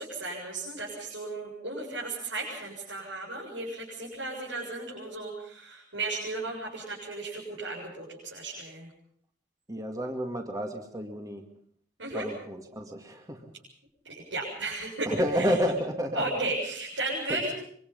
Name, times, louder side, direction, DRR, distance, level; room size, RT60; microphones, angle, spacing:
voice 1, 0.0-8.9 12.0-12.3 14.3-15.7 16.1-17.5, right 2 dB, 80° right, -4 dB, 7.4 m, -34 dB
voice 2, 9.7-11.4 12.1-13.5 15.0-16.2 17.3-17.4, equal, 20° right, 3 dB, 2.3 m, -30 dB
25.5 x 24.5 x 5.5 m, 0.64 s
head